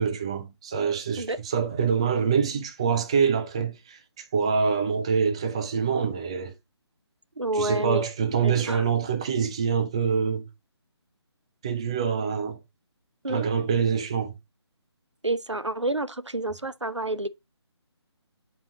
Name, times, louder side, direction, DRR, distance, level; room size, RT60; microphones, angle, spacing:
voice 1, 0.0-6.5 7.6-10.5 11.6-12.6 13.3-14.3, right 6 dB, 10° right, 0.4 m, -25 dB
voice 2, 7.4-8.0 8.4-8.8 13.2-13.4 15.2-17.3, right 2 dB, 90° right, 0.7 m, -29 dB
8.8 x 4.8 x 3.8 m
figure-of-eight pair, 150°, 15 cm